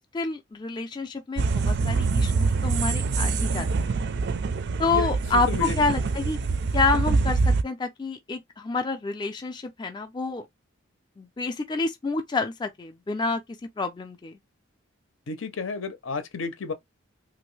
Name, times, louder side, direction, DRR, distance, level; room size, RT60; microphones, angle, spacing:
voice 1, 0.1-4.0 4.8-6.4 6.7-10.5 11.2-13.4 13.8-14.3, left 3 dB, 20° left, 0.4 m, -28 dB
sound 1, 1.4-7.6, right 4 dB, 55° right, 0.4 m, -25 dB
voice 2, 5.5-5.8 15.3-16.7, left 4 dB, 70° left, 0.6 m, -31 dB
3.0 x 2.6 x 3.1 m
head